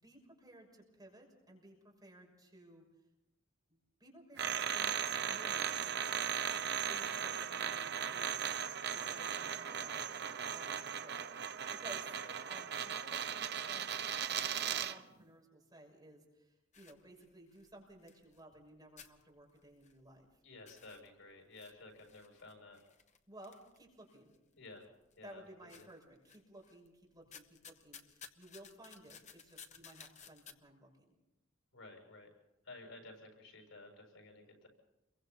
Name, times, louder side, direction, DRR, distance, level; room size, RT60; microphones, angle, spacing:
voice 1, 0.0-2.8 3.7-4.9 5.2-6.0 6.9-8.5 8.9-10.0 10.4-12.1 12.5-13.9 14.3-20.3 23.3-24.3 25.2-31.2, right 1 dB, 20° right, 0 dB, 6.1 m, -57 dB
sound 1, 4.4-15.0, right 8 dB, 55° right, 0.9 m, -37 dB
sound 2, 16.7-18.7 19.0-20.3 20.5-24.4 24.8-25.4 25.7-26.9 27.2-30.5, left 7 dB, 35° left, 1.3 m, -57 dB
voice 2, 20.4-22.8 24.6-24.9 25.2-25.4 25.7-25.9 31.7-32.3 32.6-34.7, left 2 dB, 85° left, 2 dB, 7.3 m, -54 dB
29.0 x 23.5 x 4.3 m, 0.92 s
head